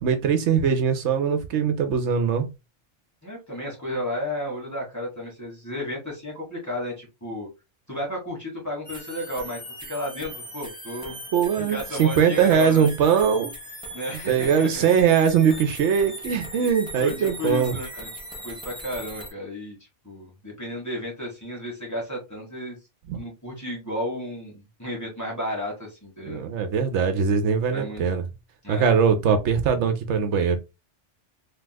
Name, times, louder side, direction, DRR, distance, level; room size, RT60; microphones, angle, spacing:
voice 1, 0.0-2.5 11.3-13.5 14.3-17.7 23.1-23.2 26.2-28.2 28.7-30.6, right 7 dB, 75° right, 0.9 m, -21 dB
voice 2, 3.2-7.5 7.9-9.6 9.9-11.2 11.6-12.9 13.9-14.9 17.0-18.1 18.4-19.8 20.0-22.8 23.1-26.4 27.7-28.0 28.6-28.8, left 1 dB, 15° left, 1.3 m, -33 dB
sound 1, 8.8-19.3, equal, 5° right, 0.8 m, -39 dB
3.5 x 2.8 x 2.2 m
omnidirectional pair, 1.2 m